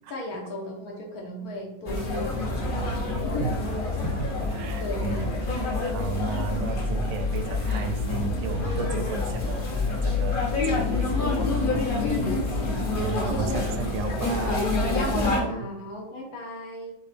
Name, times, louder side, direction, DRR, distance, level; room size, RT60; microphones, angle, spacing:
voice 1, 0.1-3.7 4.8-5.4 6.4-6.5 12.0-12.7 13.2-14.4 15.4-16.9, left 2 dB, 65° left, 0 dB, 1.4 m, -36 dB
sound 1, 1.9-15.4, left 3 dB, 45° left, 0.7 m, -27 dB
voice 2, 4.0-11.1 13.0-14.6 15.2-15.7, right 5 dB, 85° right, 7 dB, 1.3 m, -34 dB
6.7 x 2.3 x 3.3 m, 0.76 s
omnidirectional pair, 1.9 m